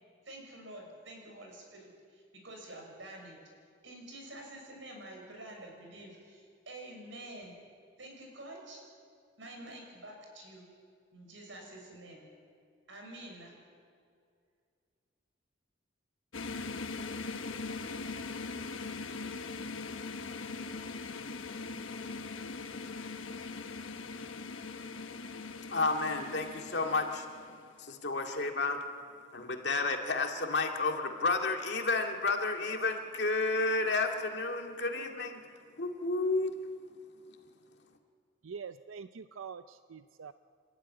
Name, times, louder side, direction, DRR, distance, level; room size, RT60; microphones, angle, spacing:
voice 1, 0.2-3.4 3.8-7.6 8.0-8.8 9.4-10.7 11.1-12.3 12.9-13.5, right 1 dB, 70° right, 1 dB, 6.2 m, -48 dB
sound 1, 16.3-27.6, left 4 dB, 85° left, 1.2 m, -41 dB
voice 2, 25.7-27.3 27.8-28.8 29.3-35.4 35.8-36.5, left 3 dB, 60° left, 3 dB, 2.2 m, -31 dB
voice 3, 38.4-40.3, right 6 dB, 90° right, 12 dB, 0.5 m, -45 dB
29.0 x 13.0 x 9.7 m, 2.3 s
head